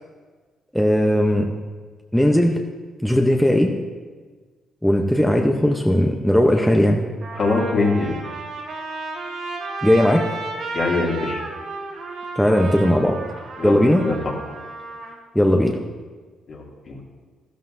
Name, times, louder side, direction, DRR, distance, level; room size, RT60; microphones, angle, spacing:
voice 1, 0.7-1.5 2.1-2.6 3.0-3.7 4.8-7.0 9.8-10.2 12.4-13.2 13.6-14.0 15.3-15.8, equal, 5° left, 2 dB, 0.8 m, -17 dB
Trumpet, 7.2-15.2, right 3 dB, 65° right, 2.6 m, -33 dB
voice 2, 7.4-8.1 10.7-11.4 13.6-14.2 16.5-17.0, left 3 dB, 55° left, -2 dB, 2.5 m, -23 dB
13.0 x 13.0 x 2.7 m, 1.4 s
cardioid pair, 90°, 0 cm